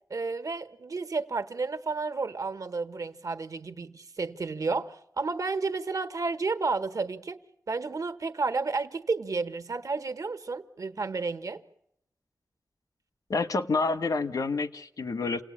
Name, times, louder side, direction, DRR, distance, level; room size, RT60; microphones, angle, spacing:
voice 1, 0.1-7.4 7.7-11.6, right 4 dB, 75° right, 1.3 m, -31 dB
voice 2, 13.3-15.4, left 3 dB, 85° left, 1.2 m, -28 dB
28.5 x 18.5 x 8.7 m
wide cardioid pair, 85°, 6 cm